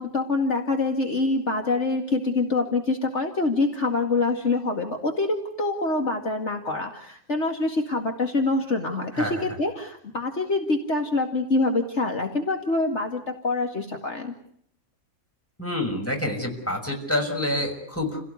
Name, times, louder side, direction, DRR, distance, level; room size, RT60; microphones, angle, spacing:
voice 1, 0.0-14.3, left 3 dB, 55° left, 3 dB, 2.5 m, -25 dB
voice 2, 9.1-9.4 15.6-18.2, left 1 dB, 10° left, 2 dB, 6.3 m, -27 dB
29.5 x 17.5 x 9.7 m, 0.68 s
omnidirectional pair, 1.5 m